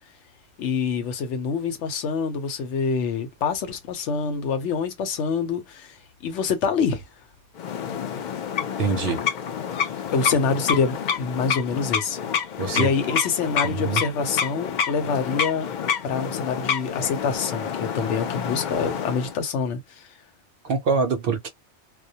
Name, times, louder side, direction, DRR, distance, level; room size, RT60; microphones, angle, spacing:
voice 1, 0.6-6.0 6.2-7.0 10.1-12.2 12.7-15.7 16.0-20.1, left 5 dB, 80° left, 0.9 m, -26 dB
sound 1, 7.6-19.4, left 7 dB, 60° left, 0.5 m, -28 dB
voice 2, 8.8-9.2 12.6-12.9 13.6-14.0 20.6-21.5, right 5 dB, 60° right, 0.6 m, -24 dB
2.1 x 2.1 x 2.7 m
omnidirectional pair, 1.2 m